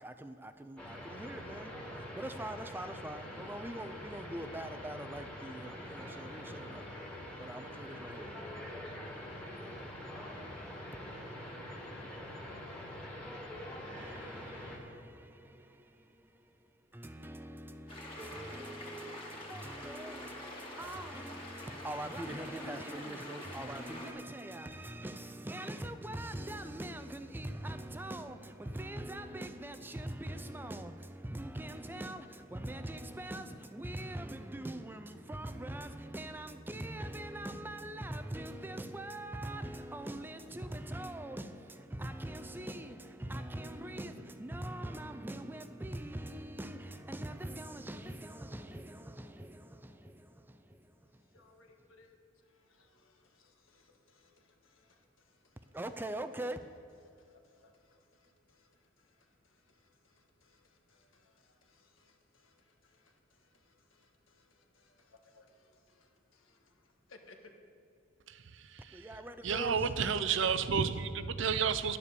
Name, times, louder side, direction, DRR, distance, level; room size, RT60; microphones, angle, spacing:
voice 1, 0.0-6.9 7.4-8.3 14.0-51.4 55.7-56.6 68.9-69.9, right 1 dB, 10° right, 0.4 m, -43 dB
sound 1, 0.8-14.8, left 1 dB, 5° left, 1.9 m, -45 dB
sound 2, 17.9-24.1, left 1 dB, 25° left, 2.2 m, -46 dB
voice 2, 51.3-55.8 57.0-67.5, left 3 dB, 80° left, 1.6 m, -65 dB
voice 3, 68.3-69.1 69.4-72.0, right 6 dB, 60° right, 0.6 m, -31 dB
11.0 x 9.7 x 6.8 m
head